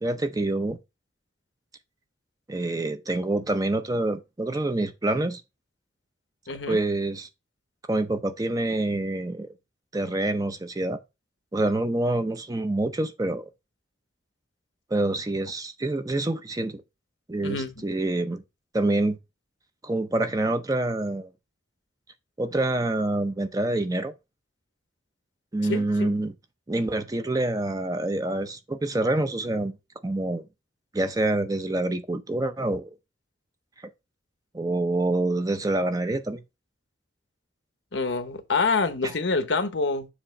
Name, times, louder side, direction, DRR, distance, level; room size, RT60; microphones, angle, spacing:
voice 1, 0.0-0.8 2.5-5.4 6.7-7.3 7.9-9.5 9.9-11.0 11.5-13.4 14.9-16.8 17.3-18.4 18.7-19.2 19.8-21.3 22.4-24.1 25.5-26.3 26.7-29.7 30.0-30.5 30.9-32.9 34.5-36.4 39.0-39.1, right 2 dB, 20° right, 0.6 m, -26 dB
voice 2, 6.5-6.8 17.4-17.8 25.7-26.1 37.9-40.1, left 4 dB, 75° left, 0.9 m, -26 dB
7.1 x 2.9 x 5.4 m
head